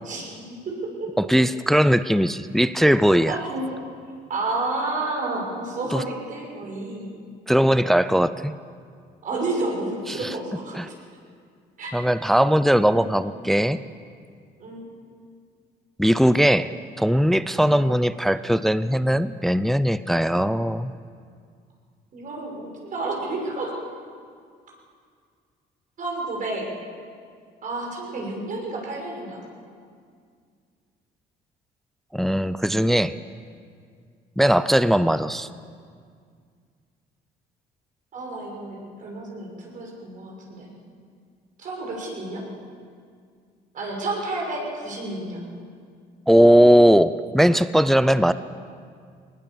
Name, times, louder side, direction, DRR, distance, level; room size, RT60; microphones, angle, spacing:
voice 1, 0.0-1.1 3.3-3.8 4.3-7.1 9.2-10.8 11.8-11.9 13.0-13.4 14.6-14.9 22.1-23.7 26.0-26.7 27.6-29.4 38.1-40.7 41.6-42.5 43.7-45.5 48.2-48.3, right 2 dB, 50° right, -1 dB, 6.2 m, -31 dB
voice 2, 1.2-3.4 5.9-6.0 7.5-8.5 10.1-10.3 10.8-10.9 11.9-13.8 16.0-16.7 17.0-20.9 32.1-33.1 34.4-35.5 46.3-48.3, equal, ahead, 14 dB, 0.4 m, -19 dB
20.0 x 19.5 x 7.1 m, 2.1 s
cardioid pair, 110°, 17 cm